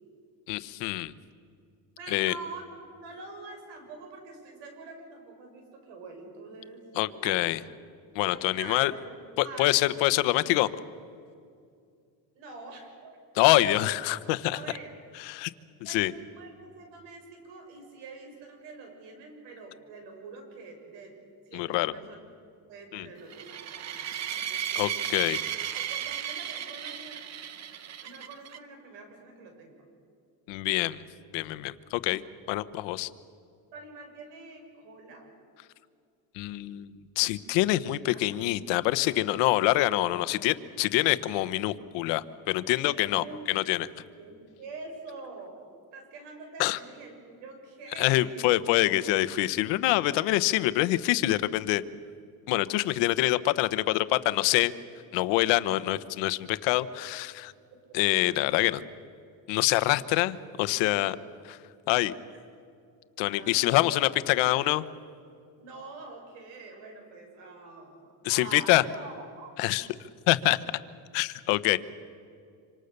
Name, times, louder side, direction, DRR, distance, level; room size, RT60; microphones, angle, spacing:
voice 1, 0.5-1.1 2.1-2.3 7.0-7.6 8.1-8.9 9.4-10.7 13.4-14.6 15.2-15.5 15.8-16.1 21.5-21.9 22.9-23.1 24.7-25.4 30.5-31.0 31.3-32.2 32.5-33.1 36.3-43.9 46.6-46.8 48.0-51.8 52.5-54.7 55.1-57.5 57.9-58.8 59.5-61.2 61.4-61.6 61.9-62.1 63.2-64.8 68.2-68.8 69.6-69.9 70.3-70.6 71.1-71.8, left 17 dB, 85° left, 14 dB, 1.1 m, -25 dB
voice 2, 2.0-7.5 8.3-10.1 12.3-13.2 13.5-13.9 14.5-14.9 15.8-21.2 21.4-22.2 22.7-25.2 25.7-27.2 28.0-29.9 33.7-35.3 38.0-38.4 42.9-43.7 44.2-45.6 45.9-48.5 52.8-52.9 63.2-63.8 65.6-69.9, right 3 dB, 80° right, 4 dB, 6.8 m, -45 dB
sound 1, 23.3-28.6, right 10 dB, 40° right, 1.0 m, -35 dB
26.5 x 26.0 x 6.7 m, 2.4 s
cardioid pair, 140°, 42 cm